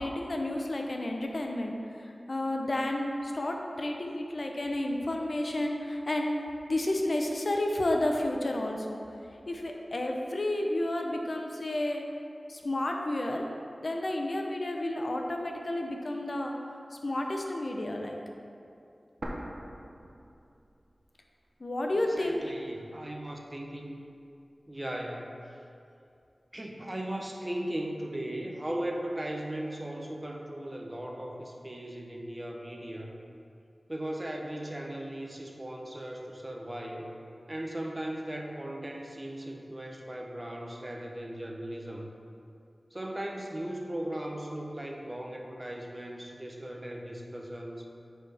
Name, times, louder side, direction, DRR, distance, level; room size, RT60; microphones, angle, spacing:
voice 1, 0.0-6.4 6.6-9.0 9.5-12.0 12.5-13.4 13.8-16.5 16.9-18.1 21.6-22.4, left 1 dB, 60° left, 2 dB, 0.7 m, -31 dB
sound 1, 19.2-21.2 21.4-21.5 22.3-23.2, right 1 dB, 70° right, 0.8 m, -42 dB
voice 2, 21.9-24.0 24.7-25.4 26.5-33.2 33.9-37.1 37.5-42.1 42.9-47.9, right 1 dB, 25° right, 1 dB, 0.8 m, -37 dB
9.4 x 4.6 x 3.5 m, 2.6 s
wide cardioid pair, 60°, 0 cm